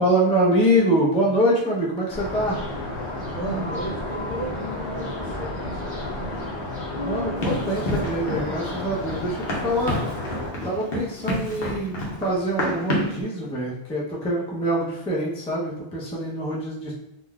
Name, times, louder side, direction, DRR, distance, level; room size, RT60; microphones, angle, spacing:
voice 1, 0.0-2.6 6.9-10.0 10.6-16.9, equal, 10° left, -4 dB, 0.4 m, -24 dB
sound 1, 2.1-10.5, left 1 dB, 30° left, 1.1 m, -32 dB
voice 2, 3.2-6.5 10.6-10.9, right 2 dB, 50° left, -3 dB, 0.7 m, -34 dB
sound 2, 3.4-9.1, equal, 40° right, 0.8 m, -39 dB
Run, 7.4-13.2, left 1 dB, 70° left, 0.9 m, -29 dB
3.6 x 2.5 x 2.2 m, 0.78 s
omnidirectional pair, 1.0 m